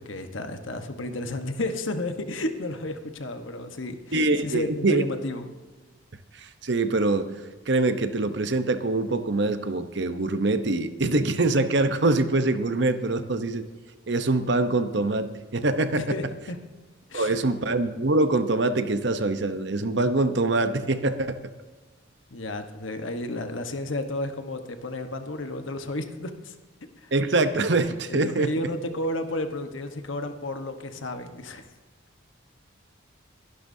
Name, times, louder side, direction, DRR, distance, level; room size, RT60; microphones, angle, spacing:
voice 1, 0.1-5.5 16.0-16.6 17.1-17.4 22.3-26.5 27.0-27.1 28.1-31.7, left 2 dB, 75° left, 7 dB, 1.2 m, -32 dB
voice 2, 4.1-5.0 6.3-7.3 7.7-13.6 14.1-16.0 17.1-21.4 27.1-28.5, right 2 dB, 60° right, 10 dB, 0.9 m, -24 dB
23.0 x 11.5 x 2.8 m, 1.3 s
head